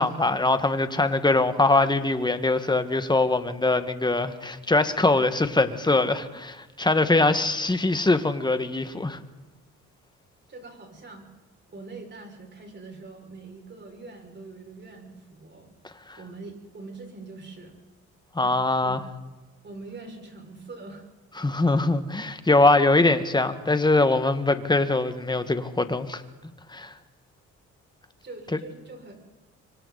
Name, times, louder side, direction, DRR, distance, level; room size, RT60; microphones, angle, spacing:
voice 1, 0.0-9.2 18.3-19.0 21.4-26.2 26.7-26.9, left 2 dB, 15° left, 10 dB, 1.8 m, -22 dB
voice 2, 10.5-11.3 11.7-15.7 16.2-17.8 18.4-18.6 18.8-19.0 19.6-21.1 28.2-29.1, right 3 dB, 35° right, 2 dB, 6.2 m, -43 dB
26.0 x 25.0 x 4.2 m, 1.2 s
cardioid pair, 90°, 30 cm